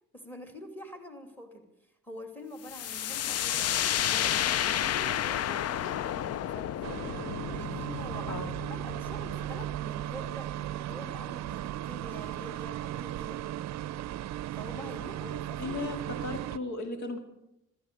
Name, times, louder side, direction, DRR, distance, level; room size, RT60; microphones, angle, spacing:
voice 1, 0.1-6.8 7.4-13.4 14.5-16.4, equal, 5° left, 6 dB, 2.8 m, -46 dB
sound 1, 2.7-10.3, left 10 dB, 55° left, 0.5 m, -31 dB
sound 2, 6.8-16.6, right 13 dB, 65° right, 0.5 m, -36 dB
voice 2, 15.6-17.2, left 3 dB, 70° left, 7 dB, 2.3 m, -36 dB
14.5 x 14.5 x 6.9 m, 0.82 s
cardioid pair, 90°, 30 cm